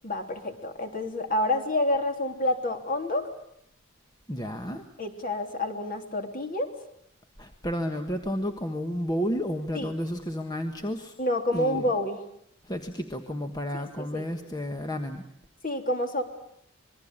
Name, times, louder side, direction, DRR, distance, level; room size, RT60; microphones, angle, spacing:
voice 1, 0.0-3.3 5.0-6.7 9.7-9.9 11.2-12.2 13.7-14.3 15.6-16.2, left 1 dB, 40° left, 5 dB, 3.2 m, -28 dB
voice 2, 4.3-4.8 7.4-11.1 11.5-11.9 12.6-15.2, equal, 20° left, 5 dB, 1.4 m, -31 dB
26.5 x 22.0 x 8.7 m, 0.71 s
head